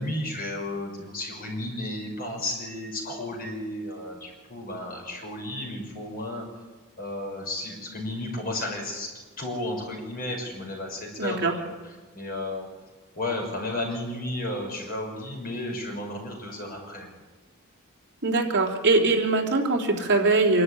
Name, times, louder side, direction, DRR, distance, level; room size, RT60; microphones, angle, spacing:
voice 1, 0.0-6.4 7.0-9.1 9.4-11.5 12.1-12.7 13.2-17.1, left 1 dB, 40° left, 1 dB, 6.1 m, -33 dB
voice 2, 11.2-11.5 18.2-20.6, right 3 dB, 55° right, 0 dB, 3.6 m, -22 dB
26.0 x 12.5 x 9.9 m, 1.4 s
head